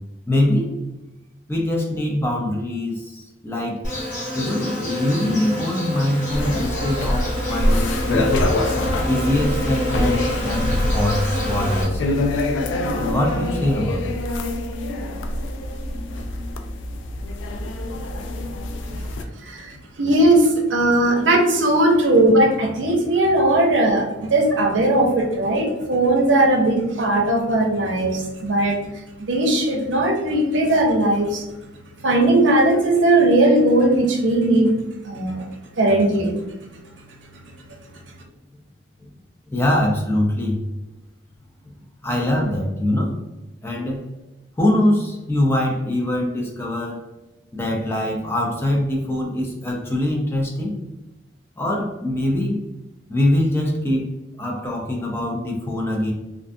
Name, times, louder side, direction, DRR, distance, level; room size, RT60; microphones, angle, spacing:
voice 1, 0.3-0.7 1.5-3.8 4.3-8.3 8.7-12.1 12.9-14.2 18.4-18.5 18.9-19.0 39.5-40.6 42.0-43.1 43.6-44.0 44.6-47.0 47.5-50.8 51.6-52.6 53.1-54.1 54.4-56.1, left 1 dB, 10° left, -1 dB, 0.4 m, -23 dB
Insect, 3.8-11.8, equal, 40° left, 1.1 m, -28 dB
sound 1, 6.3-19.2, left 1 dB, 85° left, 0.3 m, -25 dB
voice 2, 19.4-28.8 29.2-31.5 32.0-34.7 35.0-35.4 35.8-36.3, right 1 dB, 85° right, 2 dB, 0.6 m, -18 dB
2.4 x 2.2 x 2.5 m, 1.1 s
head